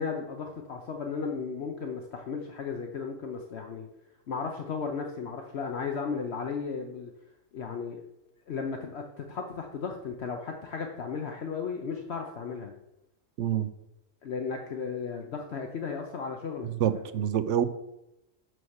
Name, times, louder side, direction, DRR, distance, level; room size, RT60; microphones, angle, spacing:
voice 1, 0.0-3.9 4.3-7.1 7.5-8.0 8.5-12.7 14.2-17.0, left 5 dB, 60° left, 3 dB, 1.0 m, -35 dB
voice 2, 13.4-13.7 16.6-17.7, right 10 dB, 70° right, 12 dB, 0.9 m, -27 dB
6.3 x 6.2 x 6.4 m, 0.89 s
omnidirectional pair, 1.3 m